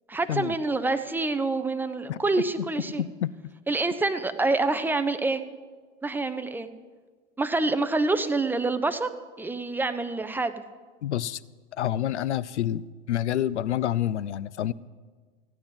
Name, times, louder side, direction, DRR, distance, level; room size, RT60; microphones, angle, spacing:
voice 1, 0.1-3.0 3.7-5.4 6.0-6.7 7.4-9.1 9.4-10.5, right 3 dB, 5° right, 9 dB, 0.7 m, -26 dB
voice 2, 3.0-3.3 11.0-11.4 11.8-12.8 13.1-14.7, left 11 dB, 85° left, 19 dB, 0.5 m, -27 dB
15.0 x 9.1 x 5.9 m, 1.4 s
hypercardioid pair, 90°, 34 cm